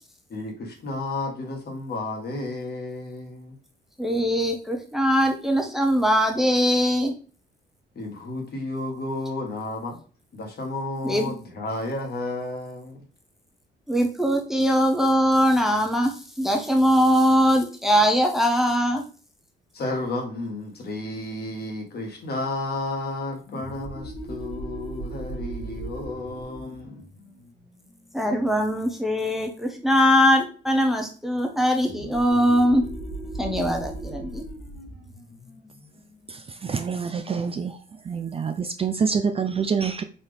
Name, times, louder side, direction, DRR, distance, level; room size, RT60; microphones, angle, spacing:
voice 1, 0.3-3.6 7.9-10.0 10.3-13.0 19.7-27.0, left 2 dB, 55° left, 1.4 m, -32 dB
voice 2, 4.0-7.1 11.0-11.3 13.9-19.0 28.1-32.8 33.4-34.4, equal, ahead, 0.7 m, -21 dB
sound 1, 23.4-28.7 31.8-37.1, right 1 dB, 90° left, 2.1 m, -38 dB
voice 3, 36.3-37.8 38.1-40.0, right 6 dB, 30° right, 0.3 m, -26 dB
4.1 x 2.7 x 3.3 m
cardioid pair, 90°, 20 cm